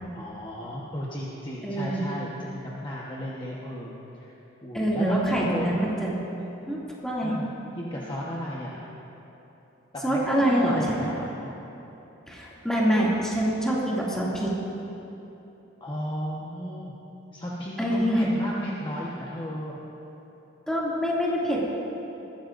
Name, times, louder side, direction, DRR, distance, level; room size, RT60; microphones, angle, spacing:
voice 1, 0.1-3.9 4.2-4.3 4.6-5.8 7.2-7.5 7.8-8.8 10.1-11.5 15.8-16.9 17.3-19.8, equal, 25° left, -5 dB, 1.2 m, -34 dB
voice 2, 1.6-2.0 4.7-6.1 6.7-7.3 10.0-11.0 12.3-14.5 17.8-18.3 20.7-21.7, equal, 5° left, -6 dB, 2.4 m, -25 dB
20.5 x 14.5 x 2.6 m, 3.0 s
head